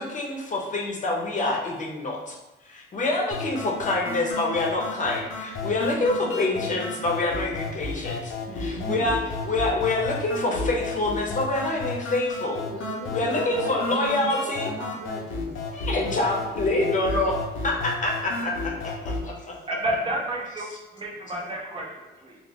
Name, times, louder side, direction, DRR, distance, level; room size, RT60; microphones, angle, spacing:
voice 1, 0.0-2.4 2.6-8.3 8.6-12.6 13.1-14.7 15.7-17.4 17.6-19.6 20.7-20.8, left 2 dB, 40° left, -1 dB, 0.7 m, -26 dB
sound 1, 3.3-19.3, left 3 dB, 85° left, 0.5 m, -33 dB
voice 2, 6.2-6.8 8.5-9.1 12.7-15.5, right 2 dB, 80° right, -3 dB, 0.8 m, -37 dB
voice 3, 19.7-20.7 20.9-22.4, right 1 dB, 25° right, -1 dB, 0.7 m, -30 dB
2.3 x 2.1 x 3.5 m, 1.0 s
cardioid pair, 90°, 20 cm